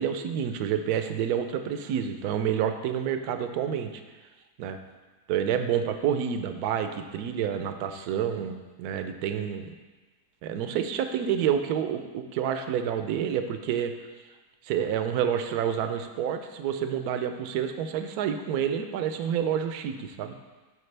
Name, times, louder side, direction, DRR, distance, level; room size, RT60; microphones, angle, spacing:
voice 1, 0.0-4.0 4.6-4.8 5.3-9.7 10.4-13.9 14.6-20.3, right 8 dB, 75° right, 8 dB, 1.0 m, -28 dB
10.5 x 4.7 x 3.3 m, 1.3 s
omnidirectional pair, 1.7 m